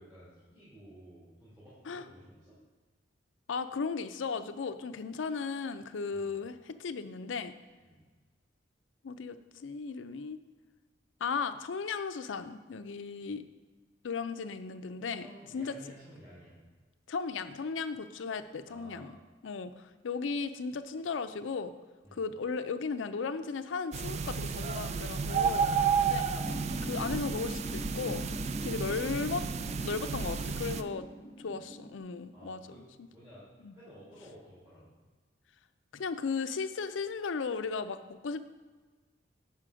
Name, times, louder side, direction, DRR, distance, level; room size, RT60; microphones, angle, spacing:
voice 1, 0.0-2.6 6.1-6.3 7.8-8.0 15.2-16.6 18.7-19.1 22.0-22.2 31.4-31.6 32.3-32.8 33.1-33.5 33.7-34.9, equal, 15° right, -10 dB, 2.4 m, -53 dB
voice 2, 3.5-7.5 9.0-10.4 11.2-13.4 14.0-15.3 15.5-15.7 17.1-19.1 19.4-21.7 22.1-26.3 26.8-28.3 28.6-29.4 29.8-31.1 31.4-32.6 33.0-33.1 33.6-33.7 35.9-38.5, left 5 dB, 85° left, 10 dB, 0.5 m, -36 dB
sound 1, 23.9-30.8, right 6 dB, 35° right, 0.3 m, -32 dB
sound 2, 26.4-32.0, equal, 20° left, 1.2 m, -41 dB
7.6 x 5.8 x 4.9 m, 1.3 s
head